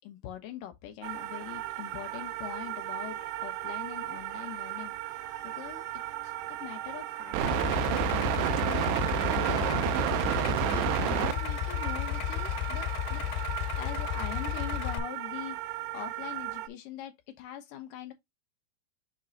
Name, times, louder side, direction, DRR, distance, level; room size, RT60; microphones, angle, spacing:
voice 1, 0.0-4.9 5.4-5.8 6.2-7.9 8.7-9.9 10.2-13.2 13.8-18.1, left 10 dB, 70° left, 2.2 m, -43 dB
sound 1, 1.0-16.7, right 13 dB, 85° right, 2.8 m, -33 dB
Idling, 7.4-15.0, left 15 dB, 90° left, 2.9 m, -33 dB
6.7 x 3.7 x 4.0 m
omnidirectional pair, 4.7 m